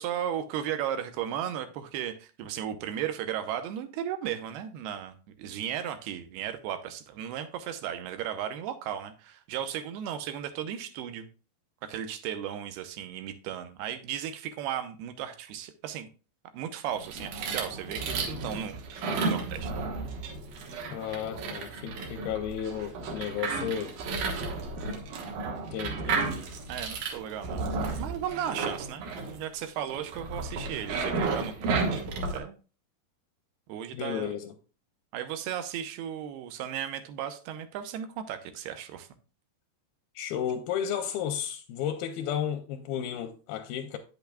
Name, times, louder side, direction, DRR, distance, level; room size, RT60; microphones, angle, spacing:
voice 1, 0.0-11.3 11.8-16.1 16.5-18.8 19.2-19.7 26.7-27.7 28.0-32.6 33.7-34.3 35.1-39.1, right 10 dB, 85° right, 2.7 m, -35 dB
sound 1, 16.9-32.4, right 4 dB, 65° right, 2.3 m, -33 dB
voice 2, 20.9-24.0 25.7-26.3 33.9-34.5 40.2-44.0, left 9 dB, 80° left, 2.3 m, -33 dB
8.8 x 8.1 x 2.3 m
omnidirectional pair, 4.6 m